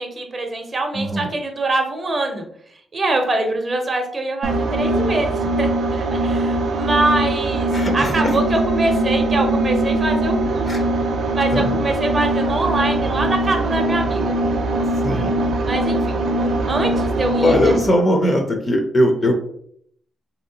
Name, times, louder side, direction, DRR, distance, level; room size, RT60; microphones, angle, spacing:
voice 1, 0.0-2.4 2.9-10.9 11.3-14.3 15.6-17.8, right 2 dB, 35° right, 3 dB, 0.6 m, -24 dB
voice 2, 0.9-1.3 7.7-8.3 10.7-10.8 11.5-11.8 15.0-15.3 17.4-19.3, left 1 dB, 30° left, 4 dB, 0.6 m, -19 dB
sound 1, 4.4-17.9, right 2 dB, 75° right, 0.5 m, -21 dB
3.1 x 2.7 x 2.7 m, 0.66 s
cardioid pair, 110°, 0 cm